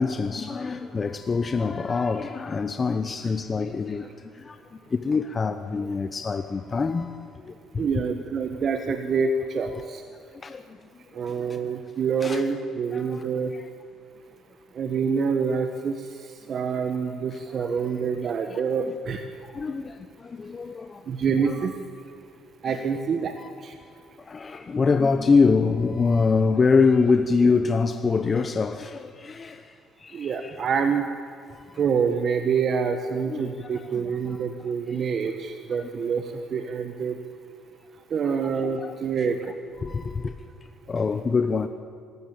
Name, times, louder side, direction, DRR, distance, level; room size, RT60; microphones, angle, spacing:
voice 1, 0.0-4.1 4.4-4.6 4.9-7.9 10.4-10.6 12.2-12.4 12.9-13.2 19.5-21.0 21.4-21.6 22.6-22.8 23.4-23.5 24.3-29.6 30.0-30.5 33.3-34.0 34.9-35.1 38.2-38.5 38.8-38.9 39.8-40.3 40.9-41.7, left 4 dB, 30° left, 0.9 m, -24 dB
voice 2, 7.8-10.0 11.1-13.5 14.7-19.3 21.1-21.8 22.6-23.4 23.6-23.7 30.1-31.0 31.8-37.2 38.1-39.5, right 6 dB, 50° right, 1.4 m, -26 dB
24.5 x 14.0 x 8.8 m
cardioid pair, 90°, 0 cm